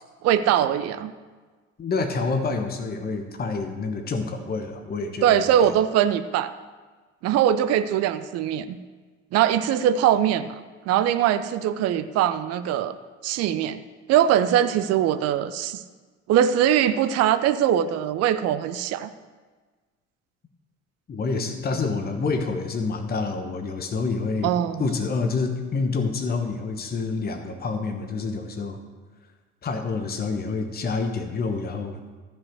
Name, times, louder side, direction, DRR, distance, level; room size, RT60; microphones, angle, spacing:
voice 1, 0.2-1.1 5.2-6.5 7.2-8.8 9.3-10.5 10.9-13.0 13.2-13.8 14.1-15.8 16.3-19.1 24.4-24.8, right 10 dB, 40° right, 11 dB, 0.7 m, -21 dB
voice 2, 1.8-5.5 21.1-24.5 24.8-28.8 29.6-32.2, left 4 dB, 25° left, 6 dB, 1.2 m, -28 dB
13.5 x 5.5 x 6.2 m, 1.4 s
figure-of-eight pair, 65°, 37 cm